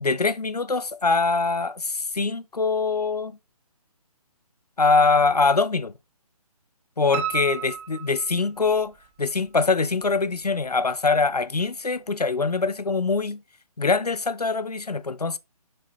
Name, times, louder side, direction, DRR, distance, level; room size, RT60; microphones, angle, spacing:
voice 1, 0.0-3.4 4.8-5.9 7.0-13.4 13.8-15.4, left 4 dB, 90° left, 0.7 m, -23 dB
Piano, 7.1-9.1 9.5-10.3 10.7-10.8 11.2-11.3 11.6-11.7, right 8 dB, 25° right, 1.0 m, -33 dB
6.5 x 4.3 x 4.2 m
figure-of-eight pair, 145°, 19 cm